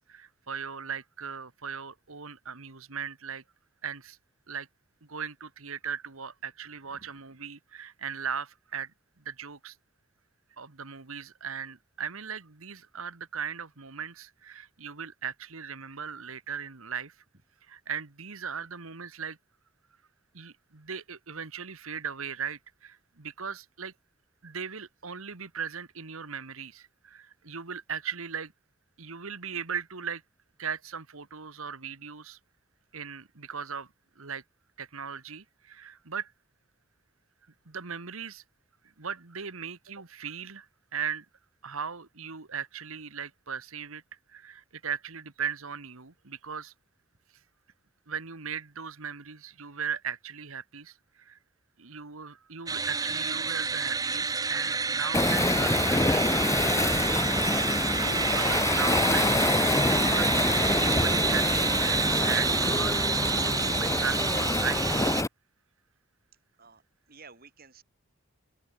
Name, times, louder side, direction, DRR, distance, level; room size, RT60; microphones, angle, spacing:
voice 1, 0.1-3.4 3.8-4.2 4.5-4.7 5.1-9.7 10.6-17.1 17.7-19.4 20.3-23.9 24.4-28.5 29.0-30.2 30.6-32.4 32.9-34.4 34.8-36.3 37.6-38.4 39.0-41.2 41.6-44.0 44.3-46.7 48.1-51.4 51.8-59.3 59.9-63.0 63.3-65.0, right 7 dB, 65° right, 1.6 m, -38 dB
sound 1, 52.7-65.2, right 4 dB, 15° right, 0.8 m, -29 dB
Waves surf, 55.1-65.3, left 2 dB, 15° left, 0.9 m, -26 dB
voice 2, 67.1-67.8, right 4 dB, 40° right, 6.4 m, -52 dB
open air
head